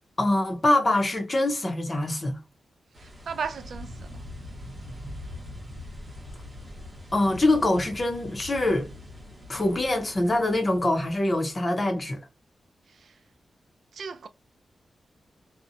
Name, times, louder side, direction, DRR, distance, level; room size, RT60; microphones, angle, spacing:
voice 1, 0.2-2.4 7.1-8.9 9.5-12.2, left 1 dB, 25° left, 0.7 m, -24 dB
sound 1, 2.9-11.6, left 1 dB, 20° right, 0.8 m, -43 dB
voice 2, 3.0-4.2 12.9-13.1 13.9-14.3, right 6 dB, 60° right, 0.3 m, -36 dB
2.7 x 2.1 x 2.5 m
wide cardioid pair, 170°, 0 cm